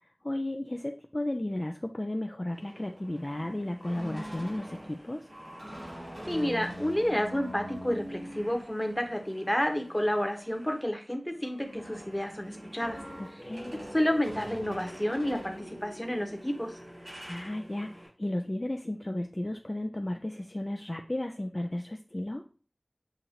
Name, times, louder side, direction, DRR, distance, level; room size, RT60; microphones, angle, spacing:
voice 1, 0.2-5.3 13.2-13.8 17.0-22.5, left 1 dB, 40° left, 4 dB, 0.3 m, -34 dB
sound 1, 2.5-10.9 11.2-18.1, equal, 70° right, 2.5 m, -44 dB
voice 2, 6.3-13.0 13.9-16.7, equal, 15° left, 3 dB, 1.0 m, -30 dB
7.1 x 2.6 x 2.8 m, 0.39 s
wide cardioid pair, 45°, 0 cm